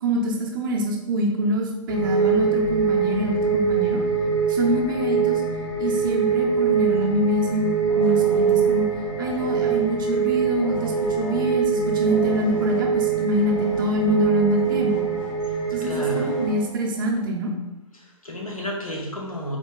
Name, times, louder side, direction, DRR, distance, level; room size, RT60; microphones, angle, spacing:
voice 1, 0.0-4.0 4.5-5.4 5.8-8.9 9.2-15.0 15.7-17.5, equal, 35° right, 1 dB, 0.7 m, -25 dB
sound 1, 1.9-16.5, right 6 dB, 20° left, 0.9 m, -23 dB
sound 2, 7.6-9.9 10.6-11.6 12.0-17.2, left 3 dB, 65° left, 1.3 m, -37 dB
voice 2, 15.4-16.4 17.9-19.6, equal, 90° left, -1 dB, 1.1 m, -32 dB
4.0 x 3.0 x 3.7 m, 0.98 s
figure-of-eight pair, 130°, 18 cm